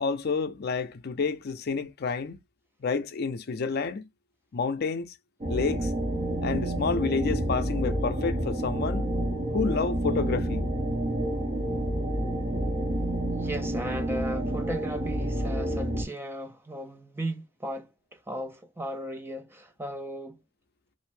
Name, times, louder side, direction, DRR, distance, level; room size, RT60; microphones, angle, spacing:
voice 1, 0.0-2.4 2.8-4.1 4.5-5.1 5.5-5.9 6.4-9.1 9.5-10.7, left 4 dB, 55° left, 0.4 m, -29 dB
sound 1, 5.4-16.0, right 1 dB, 35° right, 0.8 m, -29 dB
voice 2, 13.3-20.4, right 1 dB, 10° right, 0.4 m, -36 dB
2.6 x 2.1 x 3.1 m
head